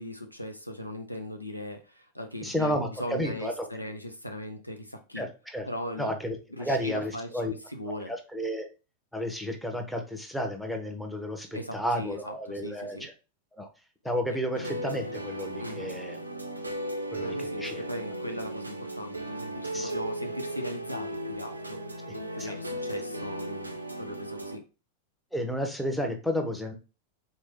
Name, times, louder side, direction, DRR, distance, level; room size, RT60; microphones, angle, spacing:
voice 1, 0.0-5.2 5.7-6.2 6.5-8.1 11.5-13.1 14.3-14.4 15.6-15.9 17.2-21.8 22.3-24.6, left 1 dB, 85° left, 4 dB, 0.6 m, -39 dB
voice 2, 2.4-3.5 5.2-5.7 6.0-7.5 8.1-8.6 9.1-11.5 11.7-13.1 13.5-13.7 14.0-16.2 17.1-17.8 19.7-19.9 22.4-22.6 25.3-26.7, equal, ahead, 4 dB, 0.9 m, -32 dB
sound 1, 14.5-24.6, right 1 dB, 85° right, 0.5 m, -36 dB
4.0 x 3.2 x 3.6 m, 0.31 s
figure-of-eight pair, 90°, 0 cm